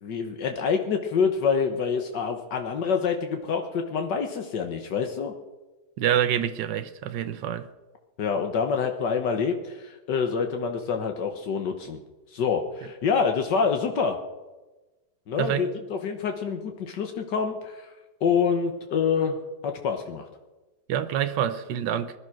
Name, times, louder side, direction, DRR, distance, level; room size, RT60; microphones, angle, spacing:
voice 1, 0.0-5.3 8.2-12.0 12.3-14.2 15.3-17.9 18.2-19.4 19.6-20.3, left 6 dB, 80° left, 1.8 m, -26 dB
voice 2, 6.0-7.7 15.4-15.6 20.9-22.1, right 10 dB, 85° right, 1.5 m, -26 dB
20.5 x 11.5 x 6.1 m
omnidirectional pair, 1.9 m